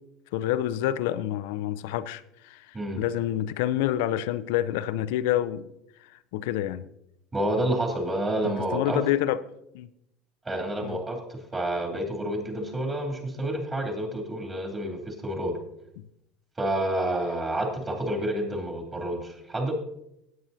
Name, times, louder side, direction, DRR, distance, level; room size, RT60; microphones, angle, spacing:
voice 1, 0.3-5.7 6.3-6.9 8.4-9.4 9.7-9.9 10.8-11.0 16.0-16.1, left 12 dB, 70° left, 0.5 m, -28 dB
voice 2, 7.3-9.0 10.4-15.5 16.6-19.7, right 1 dB, 25° right, 3.1 m, -29 dB
17.0 x 8.6 x 2.7 m
hypercardioid pair, 70°, 0 cm